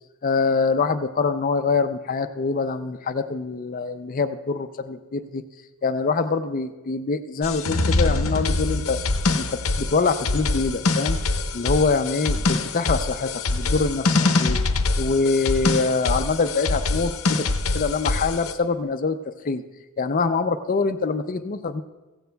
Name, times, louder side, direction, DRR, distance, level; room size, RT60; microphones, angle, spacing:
voice 1, 0.2-5.4 5.8-9.0 9.4-11.2 11.5-14.6 15.0-17.5 17.7-19.2 19.4-19.6 20.0-21.8, left 4 dB, 40° left, 10 dB, 0.4 m, -24 dB
sound 1, 7.4-18.5, left 3 dB, 75° left, 0.7 m, -24 dB
16.0 x 15.5 x 2.2 m, 1.2 s
head